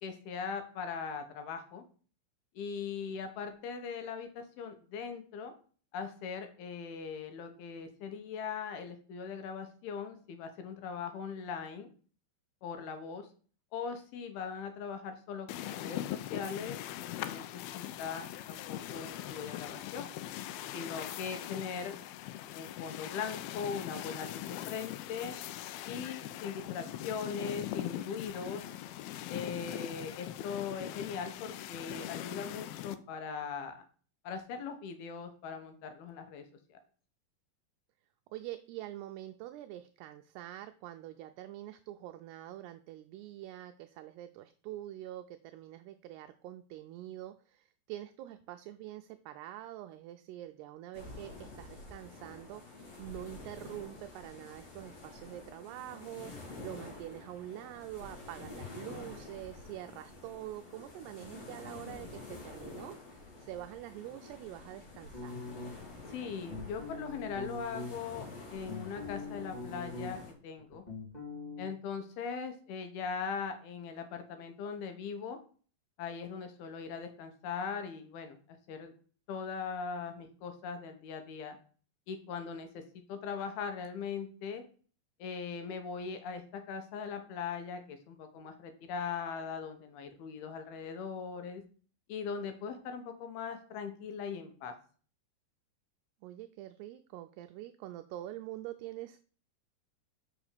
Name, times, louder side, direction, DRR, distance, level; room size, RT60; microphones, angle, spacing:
voice 1, 0.0-1.8 2.6-5.5 5.9-11.9 12.6-13.3 13.7-16.8 17.1-17.4 17.7-20.1 20.7-21.9 22.5-25.4 25.9-28.7 29.3-33.8 34.2-36.4 36.7-36.8 66.1-70.8 71.6-75.4 76.0-78.9 79.3-81.6 82.1-82.8 83.1-84.6 85.2-91.6 92.1-94.7, left 6 dB, 70° left, 7 dB, 2.6 m, -40 dB
sound 1, 15.5-33.0, left 12 dB, 85° left, 2.2 m, -41 dB
voice 2, 38.3-65.4 96.2-99.2, right 14 dB, 85° right, 7 dB, 2.4 m, -45 dB
sound 2, 50.9-70.3, left 3 dB, 40° left, 2.7 m, -49 dB
sound 3, 65.1-66.0 66.5-67.9 68.4-70.3 70.6-71.7, left 3 dB, 15° left, 1.6 m, -42 dB
6.4 x 6.0 x 6.6 m, 0.41 s
omnidirectional pair, 5.1 m